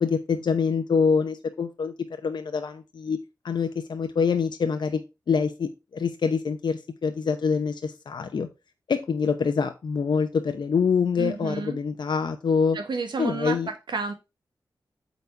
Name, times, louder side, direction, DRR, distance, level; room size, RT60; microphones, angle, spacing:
voice 1, 0.0-1.9 2.2-3.2 3.4-5.0 5.3-8.5 8.9-12.8 13.2-13.7, left 5 dB, 75° left, 0.8 m, -25 dB
voice 2, 11.2-11.8 12.7-14.1, right 4 dB, 75° right, 1.6 m, -31 dB
8.2 x 4.2 x 4.7 m
wide cardioid pair, 120°, 8 cm